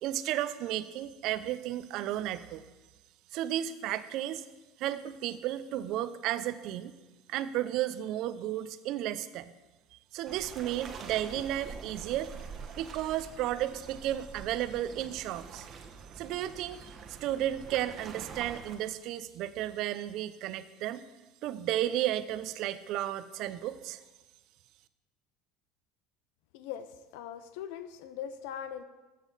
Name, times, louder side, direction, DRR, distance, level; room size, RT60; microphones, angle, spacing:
voice 1, 0.0-2.6 3.3-4.4 4.8-6.9 7.3-9.5 10.1-12.3 12.8-15.7 16.2-21.0 21.4-24.0, right 12 dB, 60° right, 13 dB, 0.6 m, -33 dB
sound 1, 10.3-18.8, right 6 dB, 45° right, 1.2 m, -46 dB
voice 2, 26.5-28.8, left 9 dB, 75° left, 12 dB, 0.6 m, -41 dB
14.0 x 6.3 x 4.0 m, 1.2 s
supercardioid pair, 90°, 0 cm